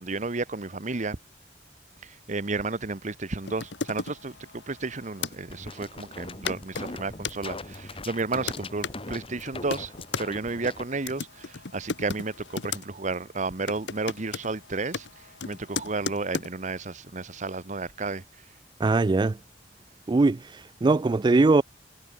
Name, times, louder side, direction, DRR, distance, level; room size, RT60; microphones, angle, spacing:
voice 1, 0.0-1.2 2.0-9.9 10.2-15.1 15.4-18.2, right 3 dB, 40° right, 1.1 m, -32 dB
sound 1, 3.4-5.4 6.1-6.2 6.5-7.4 8.0-9.0 9.5-10.3 10.9-12.8 13.1-13.4 13.7-16.5, left 5 dB, 70° left, 1.2 m, -35 dB
sound 2, 5.5-10.9, left 2 dB, 30° left, 5.0 m, -40 dB
voice 2, 18.8-19.4 20.1-20.4 20.8-21.6, right 3 dB, 25° right, 0.3 m, -20 dB
head